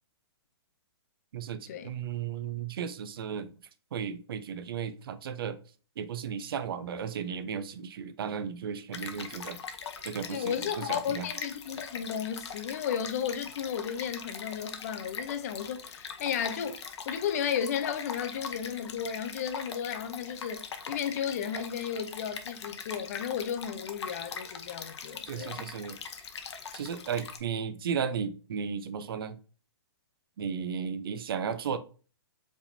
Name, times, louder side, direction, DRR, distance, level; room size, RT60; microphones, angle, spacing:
voice 1, 1.3-3.5 3.9-5.6 6.0-9.6 10.0-11.3 25.3-26.0 26.7-29.4 30.4-31.8, right 7 dB, 55° right, 0.6 m, -35 dB
Stream, 8.9-27.4, left 6 dB, 85° left, 0.8 m, -41 dB
voice 2, 10.3-16.8 17.1-25.7, left 8 dB, 35° left, 0.5 m, -34 dB
5.0 x 3.5 x 2.6 m
hypercardioid pair, 170°, 14 cm